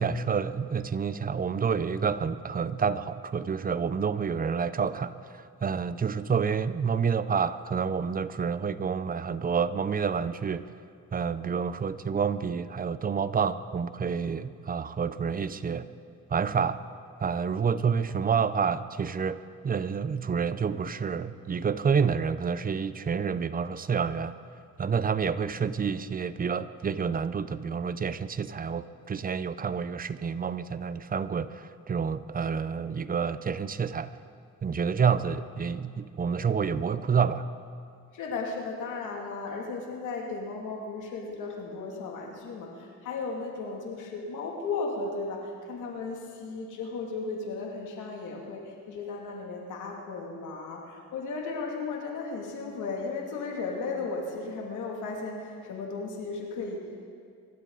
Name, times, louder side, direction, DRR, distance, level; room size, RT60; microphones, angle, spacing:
voice 1, 0.0-10.7 11.1-15.9 16.3-16.8 17.2-24.3 24.8-34.1 34.6-37.5, right 6 dB, 30° right, 14 dB, 0.6 m, -28 dB
voice 2, 38.1-57.1, left 4 dB, 80° left, 0 dB, 2.6 m, -35 dB
24.0 x 13.0 x 4.0 m, 2.3 s
cardioid pair, 90°, 30 cm